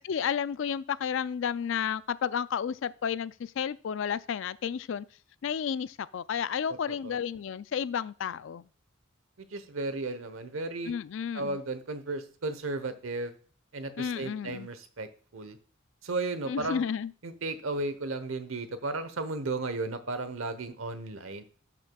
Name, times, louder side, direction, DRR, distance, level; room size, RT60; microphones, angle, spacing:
voice 1, 0.0-5.1 5.4-8.7 10.9-11.6 14.0-14.7 16.5-17.1, left 7 dB, 60° left, 0.3 m, -32 dB
voice 2, 6.7-7.2 9.4-10.9 11.3-13.3 13.7-15.6 16.0-16.8 17.2-21.4, right 2 dB, 75° right, 1.0 m, -34 dB
12.0 x 6.1 x 2.3 m
head